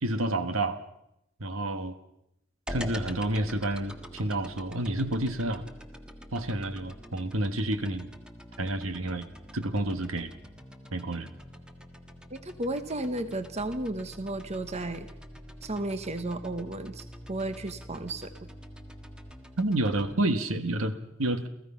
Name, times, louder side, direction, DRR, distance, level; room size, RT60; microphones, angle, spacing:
voice 1, 0.0-0.8 1.4-1.9 2.7-5.6 6.3-8.1 8.6-9.3 9.5-10.3 10.9-11.3 19.6-21.5, right 1 dB, 80° right, 9 dB, 1.5 m, -29 dB
sound 1, 2.7-20.1, equal, 5° right, 1.6 m, -45 dB
voice 2, 12.3-15.1 15.6-18.3, right 2 dB, 30° right, 10 dB, 1.0 m, -33 dB
29.0 x 15.5 x 5.7 m, 0.81 s
head